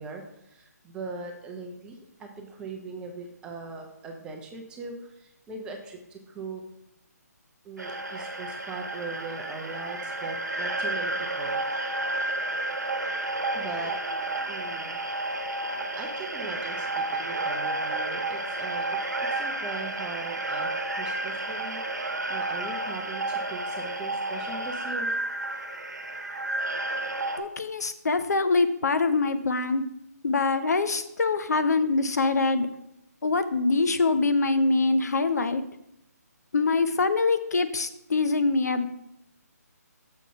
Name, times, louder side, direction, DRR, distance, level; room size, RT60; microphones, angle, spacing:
voice 1, 0.0-6.6 7.6-11.6 13.5-13.9 14.5-15.0 15.9-18.9 19.3-20.7 21.0-25.1, right 3 dB, 10° right, 2 dB, 0.6 m, -40 dB
sound 1, 7.8-27.4, right 2 dB, 85° right, 1.0 m, -31 dB
voice 2, 27.4-29.8 30.2-32.7 33.2-35.6 36.5-38.9, left 3 dB, 70° left, 10 dB, 0.6 m, -24 dB
6.3 x 3.8 x 5.5 m, 0.81 s
figure-of-eight pair, 145°, 9 cm